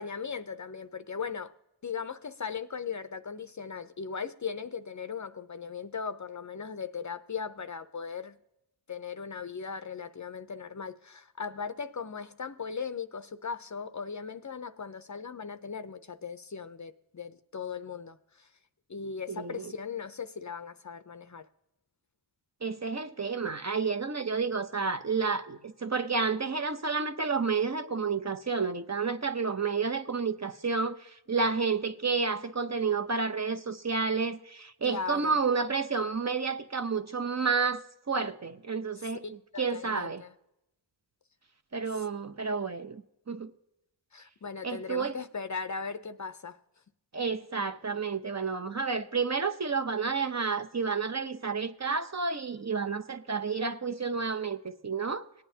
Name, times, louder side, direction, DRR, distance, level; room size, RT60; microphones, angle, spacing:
voice 1, 0.0-1.5 1.8-8.4 8.9-18.5 18.9-21.5 34.8-35.4 39.0-40.3 41.9-42.0 44.1-46.6, left 6 dB, 40° left, 0.6 m, -38 dB
voice 2, 19.3-19.7 22.6-37.8 38.1-40.2 41.7-43.5 44.6-45.1 47.1-55.2, right 5 dB, 35° right, 0.7 m, -30 dB
19.0 x 9.1 x 2.8 m
cardioid pair, 50°, 48 cm